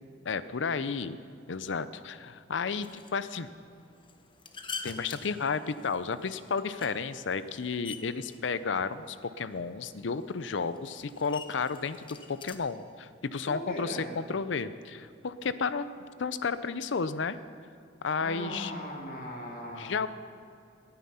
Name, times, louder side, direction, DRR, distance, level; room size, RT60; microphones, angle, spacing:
voice 1, 0.2-1.2 1.5-3.5 4.8-17.4 18.0-18.7 19.8-20.1, left 5 dB, 75° left, 14 dB, 0.6 m, -32 dB
sound 1, 2.8-12.5, left 5 dB, 25° left, 0.9 m, -47 dB
voice 2, 13.5-14.1 18.2-19.9, equal, 50° left, -1 dB, 2.7 m, -38 dB
18.5 x 9.7 x 5.6 m, 2.4 s
head